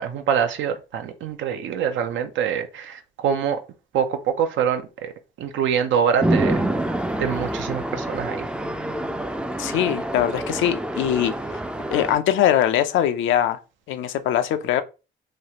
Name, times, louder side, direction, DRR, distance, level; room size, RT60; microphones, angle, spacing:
voice 1, 0.0-3.6 3.9-5.1 5.4-6.6 7.2-8.4, right 8 dB, 75° right, 0.5 m, -24 dB
Chatter / Traffic noise roadway noise / Train, 6.2-12.2, right 1 dB, 5° right, 0.3 m, -26 dB
voice 2, 9.6-11.3 11.9-13.6 13.9-14.8, left 10 dB, 80° left, 0.4 m, -21 dB
3.1 x 2.4 x 2.8 m
cardioid pair, 90°, 20 cm